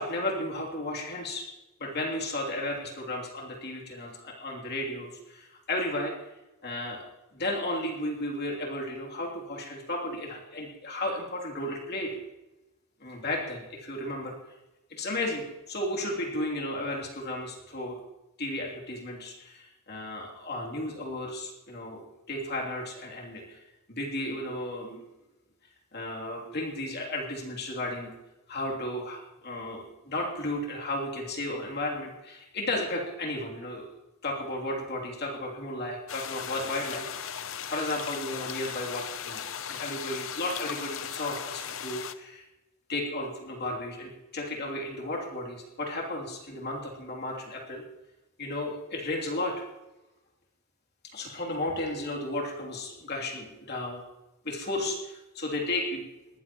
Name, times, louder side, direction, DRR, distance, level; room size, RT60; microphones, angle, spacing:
voice 1, 0.0-1.5 1.8-6.1 6.6-7.0 7.3-12.1 13.0-14.3 14.9-18.0 18.4-23.6 23.9-25.0 25.9-28.1 28.5-33.9 34.2-42.4 42.9-47.8 48.4-49.5 51.1-54.0 54.4-56.0, left 1 dB, 50° left, -2 dB, 3.0 m, -34 dB
sound 1, 36.1-42.1, left 8 dB, 65° left, 0.7 m, -37 dB
21.0 x 14.5 x 3.1 m, 1.0 s
head